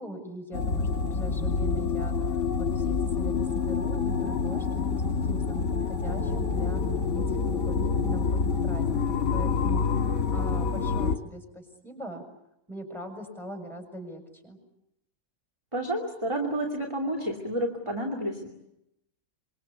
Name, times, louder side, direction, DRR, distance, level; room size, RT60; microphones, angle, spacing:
voice 1, 0.0-6.8 7.1-9.8 10.3-12.2 12.7-14.6, right 1 dB, ahead, 4 dB, 6.7 m, -41 dB
sound 1, 0.5-11.2, left 5 dB, 55° left, 1.9 m, -27 dB
voice 2, 15.7-18.5, right 1 dB, 20° right, 0 dB, 2.8 m, -30 dB
26.5 x 24.5 x 8.4 m, 0.85 s
omnidirectional pair, 1.5 m